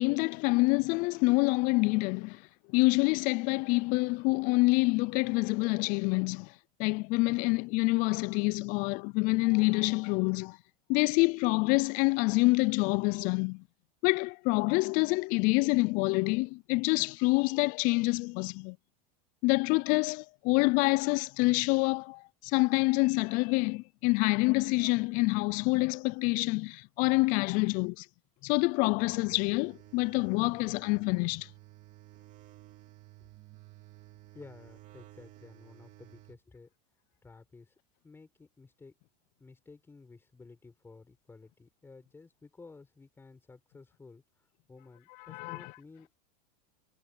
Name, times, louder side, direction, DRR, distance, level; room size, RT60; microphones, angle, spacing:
voice 1, 0.0-2.4 2.7-6.5 6.8-10.6 10.9-13.6 14.0-18.8 19.4-28.1 28.4-31.5 45.2-45.7, left 26 dB, 45° left, 0.4 m, -27 dB
sound 1, 28.8-36.4, right 17 dB, 40° right, 2.8 m, -54 dB
voice 2, 34.3-36.7 37.2-37.7 38.0-38.9 39.4-44.2 44.7-46.2, left 4 dB, 10° left, 5.3 m, -53 dB
supercardioid pair, 140°, 20 cm